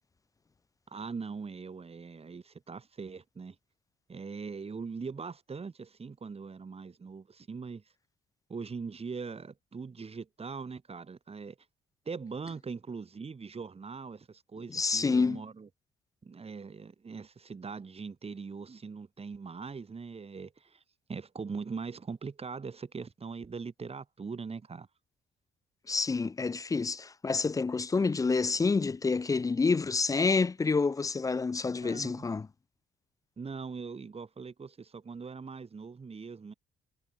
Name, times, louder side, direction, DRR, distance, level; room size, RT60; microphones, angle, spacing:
voice 1, 0.9-3.6 4.1-7.8 8.5-11.6 12.1-15.7 16.2-20.8 21.1-24.9 31.6-32.2 33.4-36.5, right 5 dB, 30° right, 1.7 m, -41 dB
voice 2, 14.7-15.4 25.9-32.5, left 4 dB, 15° left, 0.3 m, -28 dB
cardioid pair, 90°, 20 cm